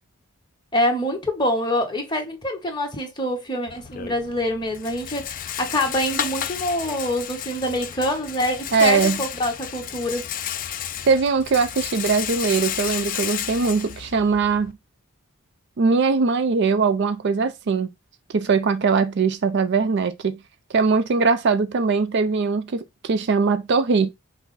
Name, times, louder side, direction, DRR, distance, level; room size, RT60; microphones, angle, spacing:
voice 1, 0.7-10.3, left 1 dB, 20° left, 1.1 m, -25 dB
Rattle, 3.7-14.7, left 10 dB, 40° left, 0.4 m, -32 dB
voice 2, 8.7-9.2 11.0-14.7 15.8-17.9 18.3-20.4 20.7-24.1, right 4 dB, 50° right, 0.4 m, -21 dB
5.7 x 2.1 x 4.0 m
head